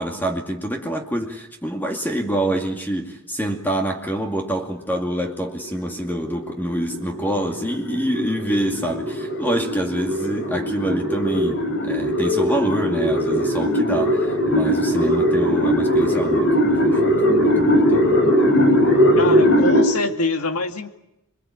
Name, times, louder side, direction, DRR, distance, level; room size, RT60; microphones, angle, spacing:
voice 1, 0.0-18.2, right 1 dB, 10° left, 2 dB, 2.3 m, -26 dB
sound 1, 5.5-19.8, equal, 55° left, 5.2 m, -20 dB
voice 2, 19.2-20.9, left 3 dB, 85° left, 5 dB, 2.3 m, -25 dB
27.5 x 22.5 x 8.7 m, 0.86 s
head